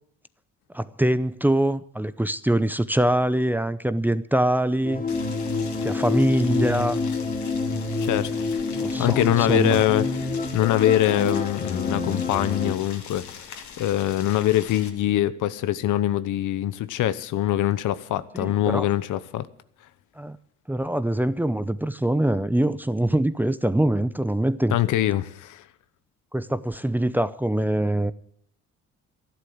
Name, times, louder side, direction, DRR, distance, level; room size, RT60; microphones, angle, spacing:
voice 1, 0.7-5.0 5.8-7.0 8.8-9.2 9.5-9.8 18.3-18.9 20.2-20.4 20.7-24.8 26.3-28.1, right 1 dB, 5° right, 0.7 m, -23 dB
sound 1, 4.8-12.7, left 3 dB, 30° left, 2.9 m, -27 dB
Boiling, 5.1-14.9, left 7 dB, 70° left, 2.3 m, -42 dB
voice 2, 9.0-13.4 13.8-19.5 24.7-25.6, left 13 dB, 85° left, 1.0 m, -23 dB
13.0 x 11.5 x 7.9 m
cardioid pair, 90°, 30 cm